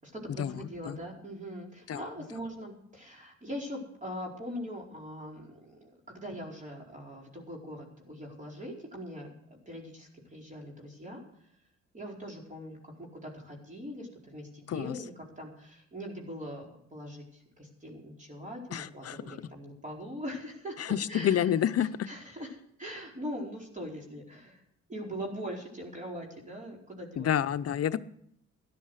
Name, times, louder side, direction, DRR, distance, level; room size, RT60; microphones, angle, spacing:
voice 1, 0.0-9.3 9.7-11.2 11.9-21.5 22.1-22.5 22.8-24.6 24.9-27.3, equal, 25° right, -1 dB, 4.7 m, -41 dB
voice 2, 18.7-19.4 20.8-21.9 27.2-28.0, left 10 dB, 55° left, 13 dB, 0.7 m, -28 dB
13.5 x 11.0 x 6.4 m, 0.71 s
cardioid pair, 90°, 30 cm